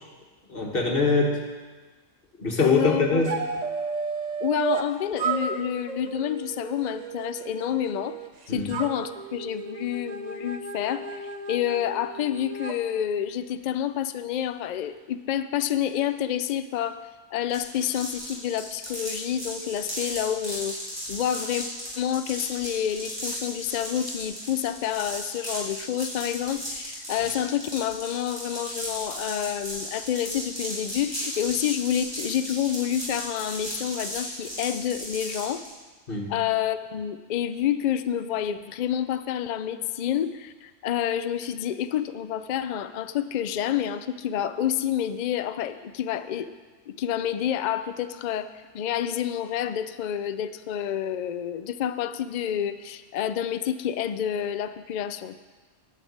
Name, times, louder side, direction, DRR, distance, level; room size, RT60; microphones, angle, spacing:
voice 1, 0.5-1.5 2.4-3.4 8.5-8.7 36.1-36.3, left 3 dB, 45° left, 0 dB, 1.7 m, -23 dB
voice 2, 2.6-3.2 4.4-8.2 8.5-17.0 17.3-20.8 21.1-21.7 22.0-35.6 36.3-46.5 46.9-48.5 48.7-55.3, left 10 dB, 85° left, 11 dB, 0.4 m, -28 dB
sound 1, 3.2-4.9 5.2-8.3 8.7-12.8, right 4 dB, 40° right, 0.7 m, -33 dB
sound 2, 17.5-35.7, equal, 20° right, 4.1 m, -35 dB
10.5 x 5.8 x 8.5 m, 1.3 s
omnidirectional pair, 1.3 m